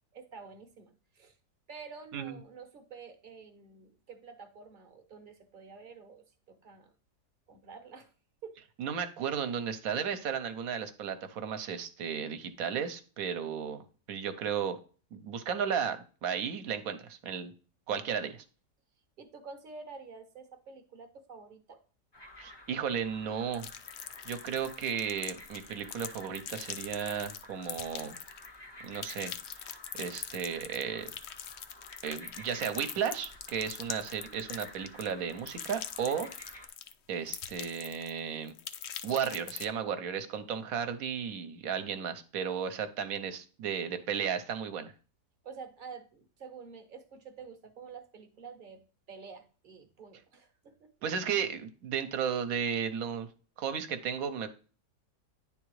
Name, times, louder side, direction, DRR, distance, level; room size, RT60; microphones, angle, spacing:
voice 1, 0.1-1.3 1.7-6.9 7.5-8.1 8.4-8.6 19.2-21.8 45.4-48.8 49.1-50.9, right 5 dB, 40° right, 7 dB, 0.8 m, -49 dB
voice 2, 8.8-13.8 14.1-14.8 15.1-17.5 17.9-18.4 22.4-23.7 24.2-28.2 28.8-29.7 30.0-31.1 32.0-36.3 37.1-38.5 39.0-44.9 51.0-53.3 53.6-54.5, right 7 dB, 65° right, 10 dB, 1.1 m, -34 dB
sound 1, 22.1-36.7, left 1 dB, 30° left, 0.5 m, -52 dB
sound 2, 23.5-28.5 28.8-36.9 37.3-38.2 38.5-39.6, left 9 dB, 80° left, 0.6 m, -42 dB
10.0 x 3.7 x 3.1 m, 0.38 s
omnidirectional pair, 1.7 m